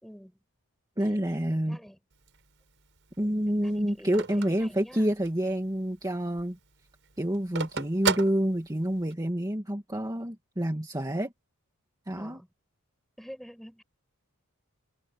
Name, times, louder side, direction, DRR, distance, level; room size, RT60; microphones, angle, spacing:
voice 1, 0.0-0.4 1.0-1.2 1.7-2.0 3.2-4.2 4.6-5.1 12.1-12.5 13.2-13.8, equal, ahead, 5.7 m, -48 dB
voice 2, 1.0-1.8 3.2-6.6 7.2-11.3 12.1-12.4, equal, 15° right, 2.1 m, -28 dB
Telephone, 2.1-5.5 5.9-6.0 6.2-9.1, right 5 dB, 60° right, 6.6 m, -34 dB
head